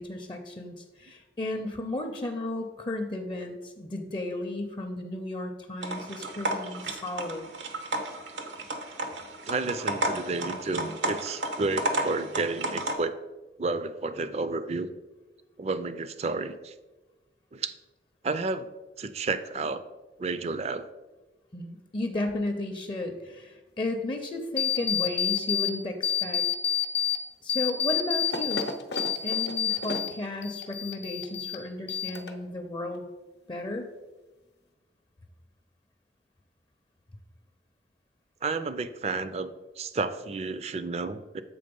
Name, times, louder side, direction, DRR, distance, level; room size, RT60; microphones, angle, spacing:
voice 1, 0.0-7.5 21.5-26.4 27.4-28.7 29.2-33.0 33.5-33.9, left 2 dB, 25° left, 5 dB, 0.5 m, -34 dB
sound 1, 5.8-12.9, right 2 dB, 90° right, 0.8 m, -32 dB
voice 2, 9.5-13.1 13.6-14.9 15.6-16.7 17.5-17.7 18.2-18.7 19.0-19.8 20.2-20.9 38.4-39.5 39.8-41.4, right 3 dB, 35° right, 12 dB, 0.4 m, -31 dB
sound 2, 24.6-25.7 26.0-27.2 27.5-30.1 30.4-31.6 31.9-32.5, left 8 dB, 70° left, 0.7 m, -28 dB
7.7 x 3.6 x 5.2 m, 1.2 s
head